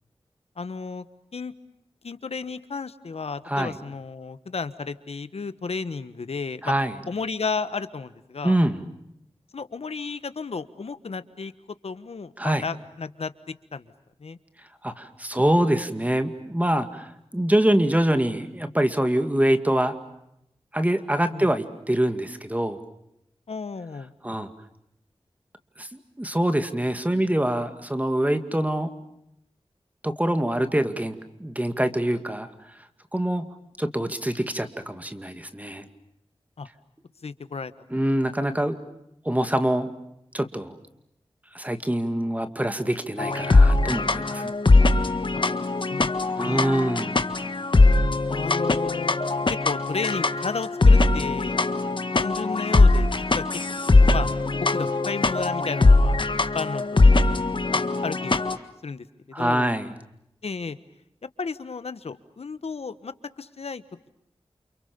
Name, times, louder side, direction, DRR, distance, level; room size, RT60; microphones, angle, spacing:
voice 1, 0.6-1.0 1.3-1.5 2.0-6.7 7.1-8.6 9.5-11.5 11.8-13.3 13.7-13.9 14.2-14.4 21.3-21.5 23.5-24.1 36.6-36.7 37.2-37.7 45.3-45.4 45.9-46.7 48.3-49.2 49.5-51.7 52.1-53.4 53.9-54.3 54.6-56.1 56.5-57.3 57.7-58.5 58.8-59.7 60.4-60.8 61.4-63.8, left 4 dB, 90° left, 13 dB, 1.4 m, -33 dB
voice 2, 3.5-3.8 6.6-6.9 8.4-8.8 12.4-12.6 14.8-19.9 20.7-22.8 24.2-24.5 25.8-28.9 30.0-32.5 33.1-33.5 33.8-35.8 37.9-38.8 39.3-39.9 40.3-40.8 41.5-44.5 46.4-47.2 59.3-59.9, right 1 dB, 15° right, 9 dB, 2.2 m, -24 dB
sound 1, 43.2-58.6, left 3 dB, 55° left, 1.6 m, -20 dB
29.5 x 29.0 x 6.9 m, 0.80 s
wide cardioid pair, 80°, 10 cm